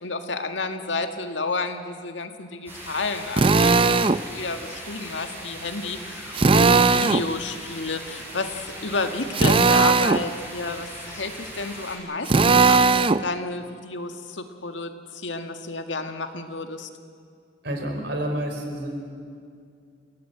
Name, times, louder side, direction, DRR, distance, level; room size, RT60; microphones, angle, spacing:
voice 1, 0.0-16.9, left 3 dB, 80° left, 7 dB, 1.8 m, -31 dB
sound 1, 2.7-12.0, equal, 10° right, 6.7 m, -39 dB
Drill, 3.4-4.2 6.3-7.3 9.3-10.2 12.3-13.2, right 4 dB, 30° right, 0.5 m, -18 dB
voice 2, 17.6-19.1, right 1 dB, 65° right, 3 dB, 4.4 m, -29 dB
29.0 x 17.5 x 8.0 m, 2.3 s
head